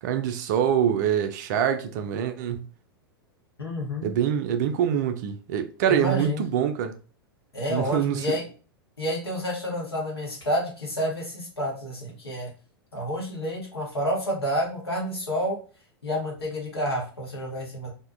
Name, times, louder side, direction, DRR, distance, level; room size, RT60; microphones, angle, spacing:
voice 1, 0.0-2.7 4.0-6.9 7.7-8.4, right 9 dB, 50° right, 0.4 m, -25 dB
voice 2, 3.6-4.1 5.9-6.4 7.5-8.4 9.0-12.5 12.9-15.6 16.0-17.9, equal, 85° left, 1.1 m, -29 dB
2.6 x 2.2 x 2.4 m
figure-of-eight pair, 95°, 13 cm